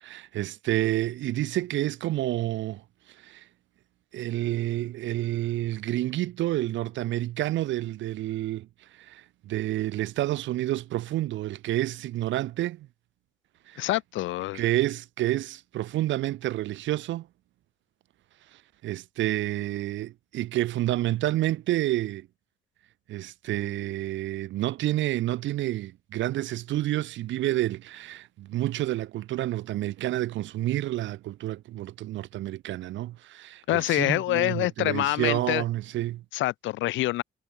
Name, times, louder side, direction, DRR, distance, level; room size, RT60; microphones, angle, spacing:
voice 1, 0.0-2.8 3.2-3.4 4.1-8.7 8.9-12.9 13.7-13.9 14.5-17.3 18.8-22.3 23.1-36.2, right 15 dB, 70° right, 0.5 m, -29 dB
voice 2, 13.8-14.6 33.7-35.6 36.3-37.2, left 16 dB, 75° left, 0.4 m, -26 dB
cardioid pair, 90°, 20 cm